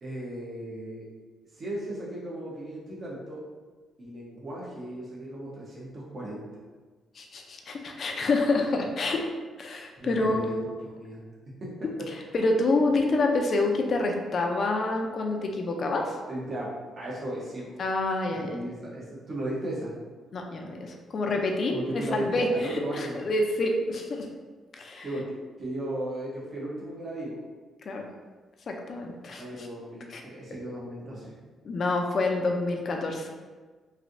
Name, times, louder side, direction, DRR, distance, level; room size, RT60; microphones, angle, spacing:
voice 1, 0.0-1.1 1.5-3.4 4.0-6.4 10.0-11.2 11.6-11.7 16.3-17.8 18.4-19.9 21.7-23.2 25.0-25.2 25.6-27.4 29.4-31.4, right 1 dB, 45° right, -6 dB, 0.9 m, -36 dB
voice 2, 7.2-9.2 9.6-10.5 12.3-16.2 17.8-18.6 20.3-24.3 24.8-25.3 27.9-28.1 28.7-29.7 30.0-30.2 31.6-33.3, left 2 dB, 50° left, 2 dB, 0.5 m, -27 dB
3.1 x 2.6 x 2.6 m, 1.4 s
cardioid pair, 90°, 0 cm